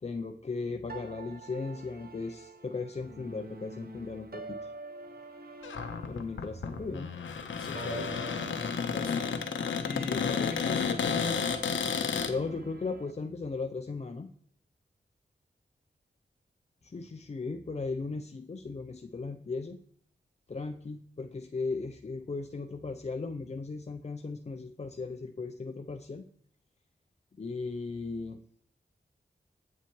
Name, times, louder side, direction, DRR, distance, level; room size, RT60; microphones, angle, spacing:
voice 1, 0.0-4.7 6.1-7.1 10.1-10.2 12.2-14.3 16.8-19.8 20.5-26.3 27.4-28.4, left 4 dB, 35° left, 5 dB, 0.5 m, -37 dB
sound 1, 0.9-13.1, right 2 dB, 55° right, 0.9 m, -46 dB
Cupboard open or close, 5.6-12.3, left 6 dB, 85° left, 0.6 m, -32 dB
voice 2, 7.6-9.3 9.8-11.4, left 3 dB, 55° left, 5 dB, 1.5 m, -41 dB
8.3 x 7.3 x 3.0 m, 0.63 s
cardioid pair, 50°, 19 cm